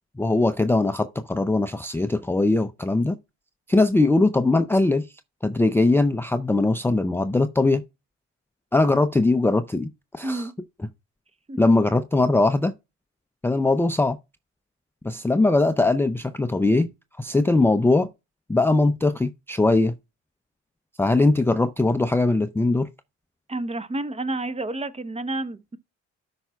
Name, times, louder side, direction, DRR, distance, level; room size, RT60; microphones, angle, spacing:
voice 1, 0.2-3.2 3.7-5.1 5.4-7.8 8.7-9.9 10.1-10.5 11.6-12.7 13.4-14.2 15.0-16.9 17.2-18.1 18.5-20.0 21.0-22.9, left 2 dB, 10° left, 0.4 m, -20 dB
voice 2, 10.2-10.5 11.5-11.6 23.5-25.8, right 2 dB, 20° right, 0.9 m, -30 dB
12.5 x 5.7 x 2.3 m
cardioid pair, 90°, 30 cm